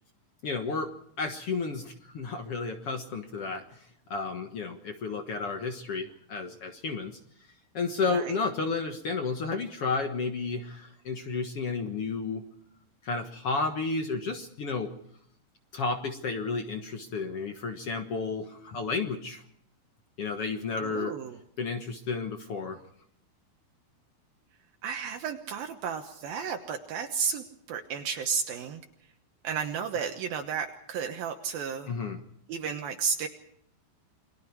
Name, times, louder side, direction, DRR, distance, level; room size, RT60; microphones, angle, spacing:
voice 1, 0.4-0.9 1.2-3.6 4.1-7.1 7.7-12.4 13.0-14.9 15.7-19.4 20.2-21.1 21.6-22.8 31.9-32.2, left 4 dB, 60° left, 5 dB, 1.6 m, -32 dB
voice 2, 20.8-21.4 24.8-28.8 29.4-31.9 32.5-33.3, right 6 dB, 70° right, 5 dB, 2.9 m, -33 dB
29.0 x 22.5 x 4.7 m, 0.67 s
omnidirectional pair, 4.6 m